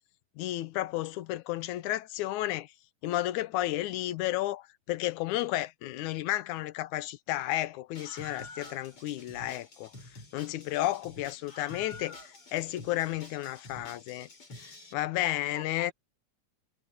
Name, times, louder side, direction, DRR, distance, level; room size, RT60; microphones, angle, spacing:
voice 1, 0.4-2.7 3.0-9.9 10.3-14.3 14.6-15.9, left 15 dB, 80° left, 2.2 m, -32 dB
Screaming, 7.9-14.9, left 2 dB, 45° left, 5.9 m, -48 dB
voice 2, 9.8-11.0 15.5-15.9, left 1 dB, 10° left, 6.4 m, -54 dB
omnidirectional pair, 3.4 m